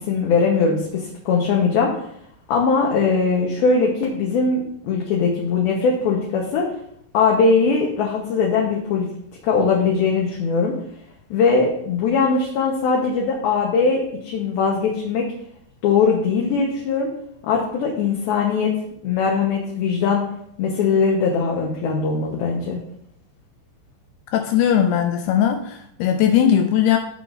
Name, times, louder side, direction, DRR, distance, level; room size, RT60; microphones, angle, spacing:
voice 1, 0.1-1.9 2.5-6.7 7.1-9.1 9.4-10.7 11.3-15.3 15.8-17.1 17.4-18.7 19.0-20.2 20.6-22.8, left 5 dB, 70° left, -1 dB, 2.5 m, -20 dB
voice 2, 24.3-27.0, left 9 dB, 85° left, 5 dB, 2.3 m, -18 dB
15.0 x 5.8 x 2.6 m, 0.71 s
omnidirectional pair, 5.2 m